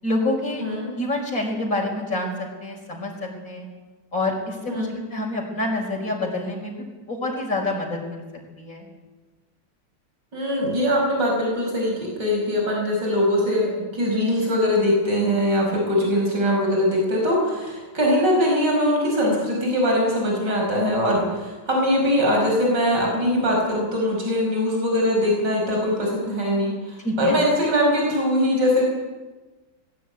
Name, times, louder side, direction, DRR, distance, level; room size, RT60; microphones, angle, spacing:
voice 1, 0.0-0.6 1.0-3.7 4.1-8.2 8.6-8.9 21.1-21.2 27.0-27.4, left 2 dB, 45° left, 0 dB, 5.6 m, -27 dB
voice 2, 0.6-0.9 4.7-5.0 10.3-21.2 21.7-28.8, equal, 65° right, -1 dB, 6.1 m, -22 dB
20.5 x 16.5 x 9.3 m, 1.2 s
omnidirectional pair, 2.1 m